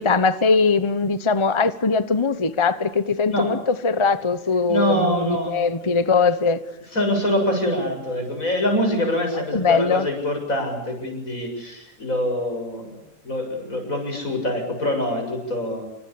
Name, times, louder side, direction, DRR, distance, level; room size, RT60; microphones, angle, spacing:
voice 1, 0.0-6.6 9.5-10.1, left 4 dB, 25° left, 1.1 m, -21 dB
voice 2, 4.7-5.6 6.9-13.0 13.2-15.9, left 1 dB, 80° left, 7.8 m, -24 dB
28.0 x 24.5 x 8.7 m
omnidirectional pair, 1.4 m